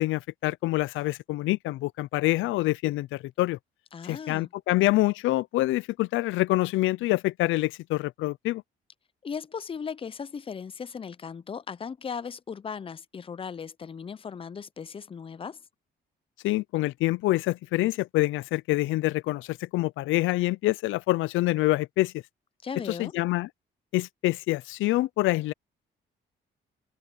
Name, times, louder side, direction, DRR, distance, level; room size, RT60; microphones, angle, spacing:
voice 1, 0.0-3.6 4.1-8.6 16.4-22.2 22.9-23.5 23.9-25.5, left 18 dB, 85° left, 0.4 m, -26 dB
voice 2, 3.9-4.5 9.2-15.6 22.6-23.1, left 6 dB, 25° left, 0.5 m, -37 dB
cardioid pair, 90°, 20 cm